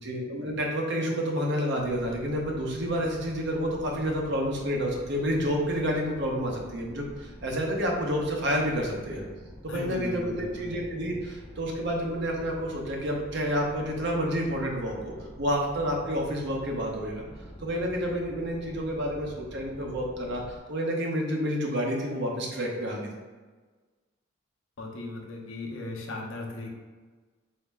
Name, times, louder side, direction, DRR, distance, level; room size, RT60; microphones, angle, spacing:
voice 1, 0.0-9.2 9.6-17.2 17.6-23.1, equal, 60° right, 0 dB, 0.8 m, -29 dB
sound 1, 1.8-20.6, equal, 15° left, 0.4 m, -47 dB
voice 2, 9.7-10.7 24.8-26.7, left 2 dB, 90° left, 0 dB, 0.7 m, -37 dB
4.1 x 2.7 x 3.4 m, 1.4 s
head